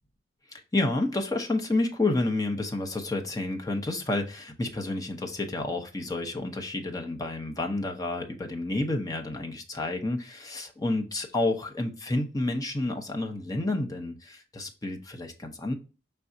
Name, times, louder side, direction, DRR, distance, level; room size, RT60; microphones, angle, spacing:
voice 1, 0.5-15.7, left 2 dB, 20° left, 0.7 m, -30 dB
6.0 x 3.4 x 2.6 m
head